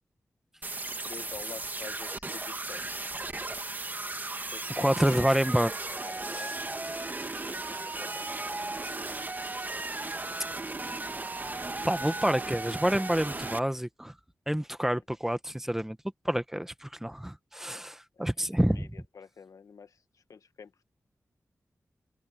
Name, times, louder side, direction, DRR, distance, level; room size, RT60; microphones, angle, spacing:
sound 1, 0.6-13.6, right 2 dB, 35° right, 1.8 m, -36 dB
voice 1, 1.0-2.9 4.5-5.3 6.0-6.6 7.5-8.4 18.7-20.0 20.3-20.8, left 6 dB, 80° left, 1.3 m, -47 dB
sound 2, 2.7-8.9, right 4 dB, 60° right, 4.5 m, -59 dB
voice 2, 4.8-5.7 6.4-6.5 11.8-14.1 14.5-16.0 16.2-18.9, equal, 5° right, 1.3 m, -28 dB
cardioid pair, 65°, 6 cm